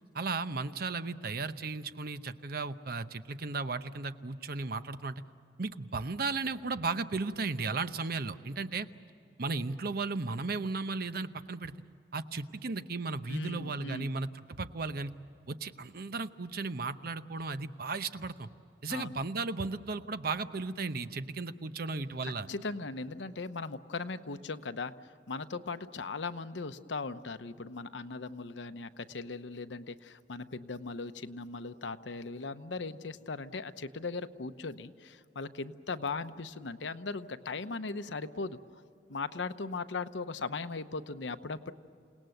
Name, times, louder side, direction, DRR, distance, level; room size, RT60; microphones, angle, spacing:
voice 1, 0.1-5.2 5.6-8.9 9.4-11.7 12.1-15.1 15.5-18.5 18.8-22.5, right 3 dB, 60° right, 11 dB, 0.8 m, -35 dB
voice 2, 13.3-14.1 18.9-19.1 22.2-38.8 39.1-41.7, left 3 dB, 85° left, 11 dB, 0.9 m, -38 dB
28.5 x 18.5 x 7.9 m, 2.7 s
head